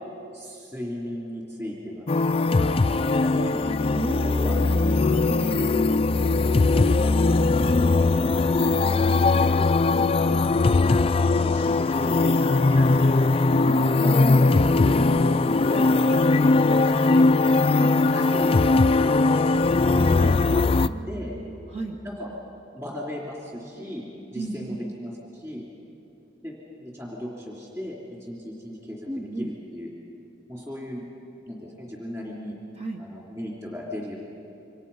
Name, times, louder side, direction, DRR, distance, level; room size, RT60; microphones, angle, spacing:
voice 1, 0.3-2.1 2.6-3.7 4.2-4.6 5.0-5.7 6.5-7.1 8.4-9.7 10.3-13.3 14.0-15.1 15.6-17.3 17.9-19.3 19.9-20.8 21.1-21.4 22.0-22.3 22.7-25.7 26.4-29.1 29.4-29.9 30.5-31.0 31.5-32.6 33.0-34.2, left 1 dB, 15° right, -4 dB, 3.3 m, -36 dB
sound 1, 2.1-20.9, left 3 dB, 30° left, 0.4 m, -20 dB
voice 2, 3.9-5.7 13.5-14.4 15.1-15.7 17.7-18.0 20.5-22.0 24.3-24.8 29.0-29.5 32.8-33.1, right 1 dB, 35° right, 1 dB, 1.1 m, -35 dB
28.0 x 25.0 x 5.6 m, 2.9 s
head